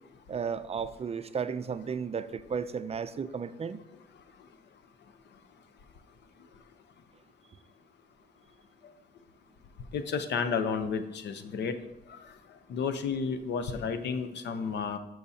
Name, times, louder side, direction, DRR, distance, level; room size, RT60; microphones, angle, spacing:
voice 1, 0.3-3.8, right 6 dB, 35° right, 13 dB, 0.4 m, -34 dB
voice 2, 9.9-11.8 12.7-15.0, left 6 dB, 85° left, 9 dB, 0.8 m, -31 dB
13.5 x 6.3 x 2.8 m, 0.95 s
cardioid pair, 105°, 18 cm